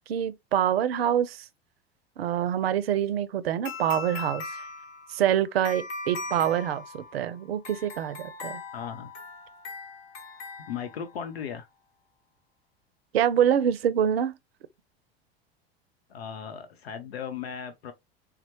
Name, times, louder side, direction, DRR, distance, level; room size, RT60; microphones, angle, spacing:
voice 1, 0.1-1.4 2.2-4.4 5.1-8.6 13.1-14.3, right 10 dB, 75° right, 0.5 m, -25 dB
sound 1, 3.6-11.3, left 4 dB, 45° left, 1.0 m, -40 dB
voice 2, 8.7-9.1 10.7-11.7 16.1-17.9, left 7 dB, 75° left, 0.7 m, -36 dB
4.2 x 2.0 x 2.7 m
figure-of-eight pair, 85°, 31 cm